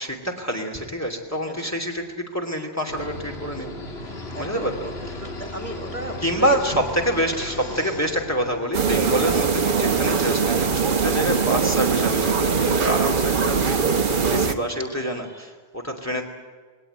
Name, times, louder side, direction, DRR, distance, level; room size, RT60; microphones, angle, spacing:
voice 1, 0.0-3.8 4.4-4.8 6.2-16.3, equal, 15° left, 1 dB, 2.9 m, -27 dB
voice 2, 1.4-2.0 4.3-6.8 7.4-8.2 14.8-14.9, right 1 dB, 35° right, 4 dB, 1.9 m, -36 dB
sound 1, 2.9-8.6, left 2 dB, 80° left, 2.3 m, -35 dB
sound 2, 8.7-14.5, right 5 dB, 55° right, 1.2 m, -21 dB
20.5 x 18.0 x 9.0 m, 1.5 s
omnidirectional pair, 1.0 m